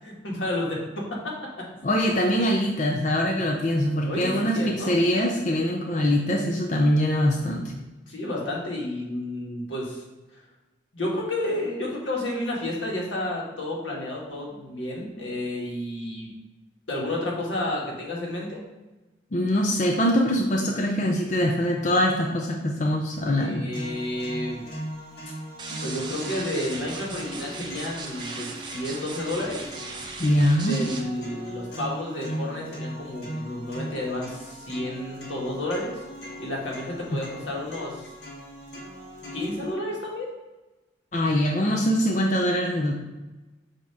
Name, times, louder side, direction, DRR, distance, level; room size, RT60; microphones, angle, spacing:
voice 1, 0.0-1.6 4.1-5.0 8.1-10.0 10.9-16.3 16.9-18.6 23.3-24.6 25.8-29.6 30.7-36.0 36.4-38.1 39.3-40.3, left 1 dB, 85° left, -2 dB, 1.7 m, -31 dB
voice 2, 1.8-7.7 19.3-23.7 25.7-25.8 30.2-30.8 41.1-43.0, equal, 40° left, 0 dB, 0.5 m, -23 dB
sound 1, 23.7-39.7, equal, 60° left, 1.4 m, -39 dB
sound 2, 25.6-31.0, right 3 dB, 25° right, 0.5 m, -38 dB
7.1 x 2.9 x 4.7 m, 1.1 s
head